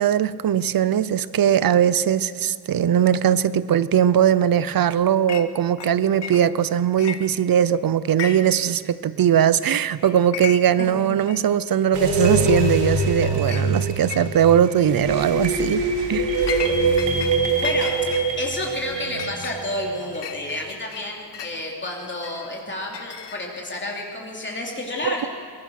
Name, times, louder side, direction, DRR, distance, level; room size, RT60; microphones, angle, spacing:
voice 1, 0.0-16.5 25.0-25.3, right 9 dB, 55° right, 17 dB, 0.7 m, -20 dB
Chink clink, 5.3-5.5 5.8-6.7 7.0-7.7 8.1-8.7 8.9-9.0 9.6-9.8 10.0-10.8 11.3-11.4 12.2-12.3 12.8-13.1 13.5-13.7 14.1-14.6 15.0-15.3 15.8-17.3 17.6-21.6 22.2-23.7, left 8 dB, 80° left, 1.4 m, -35 dB
sound 1, 11.9-20.0, right 2 dB, 85° right, 3.1 m, -24 dB
voice 2, 17.6-18.0 18.4-25.3, left 1 dB, 25° left, -1 dB, 3.0 m, -30 dB
23.0 x 21.5 x 6.5 m, 2.2 s
wide cardioid pair, 155°, 41 cm